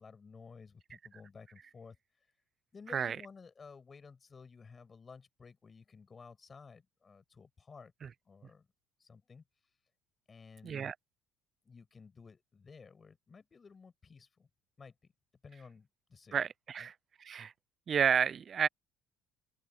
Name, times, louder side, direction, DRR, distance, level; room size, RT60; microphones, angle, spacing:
voice 1, 0.0-2.0 2.7-7.9 8.2-8.7 9.0-9.4 10.3-10.9 11.6-14.5 14.8-15.1 15.4-16.4 16.8-16.9, left 5 dB, 25° left, 5.8 m, -54 dB
voice 2, 10.6-10.9 16.3-16.9 17.2-17.5 17.9-18.7, right 7 dB, 35° right, 0.4 m, -30 dB
open air
cardioid pair, 130°, 0 cm